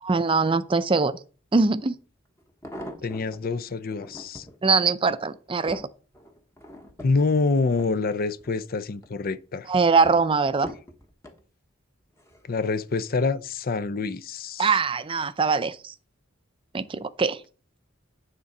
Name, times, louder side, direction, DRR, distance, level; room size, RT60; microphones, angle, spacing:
voice 1, 0.1-1.2 1.5-2.0 4.6-5.9 9.7-10.7 14.6-15.9 16.7-17.4, right 4 dB, 25° right, 0.5 m, -22 dB
sound 1, 1.6-1.7 2.4-3.4 3.9-4.6 5.1-8.5 8.9-9.4 10.0-11.4 12.2-12.5 12.8-12.9, equal, 15° left, 1.1 m, -43 dB
voice 2, 3.0-4.5 7.0-9.7 12.5-14.7, left 3 dB, 50° left, 0.5 m, -26 dB
9.8 x 3.7 x 5.4 m
head